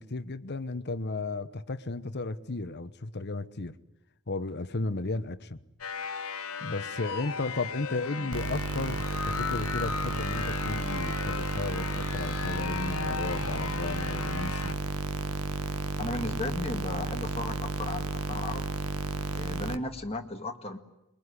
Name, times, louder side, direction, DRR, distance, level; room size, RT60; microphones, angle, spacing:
voice 1, 0.0-3.7 4.3-5.6 6.6-14.8, left 3 dB, 50° left, 1.1 m, -34 dB
sound 1, 5.8-14.7, left 6 dB, 70° left, 1.8 m, -36 dB
sound 2, 8.3-19.8, right 3 dB, 90° right, 1.4 m, -33 dB
voice 2, 16.0-18.7 19.3-20.8, left 2 dB, 30° left, 2.1 m, -35 dB
27.0 x 22.5 x 9.9 m
head